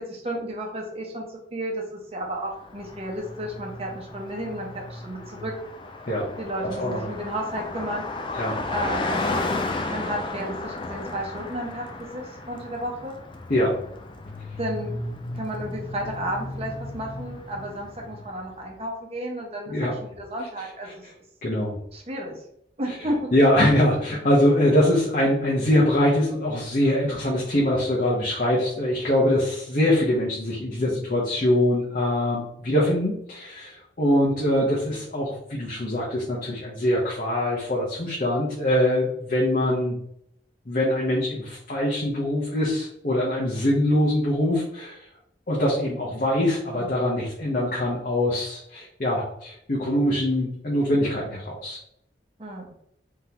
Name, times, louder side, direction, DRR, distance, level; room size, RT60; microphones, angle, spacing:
voice 1, 0.0-5.5 6.4-8.0 8.7-9.3 9.9-13.1 14.6-15.0 15.3-21.1 21.9-22.4 22.8-23.3 46.7-47.0 52.4-52.7, right 1 dB, 35° right, 0 dB, 0.9 m, -32 dB
Car passing by, 2.5-18.5, left 2 dB, 30° left, 0.4 m, -34 dB
voice 2, 21.4-21.7 23.3-40.0 40.7-45.0 45.5-51.8, left 1 dB, 50° left, -5 dB, 0.9 m, -23 dB
3.7 x 3.6 x 2.9 m, 0.73 s
head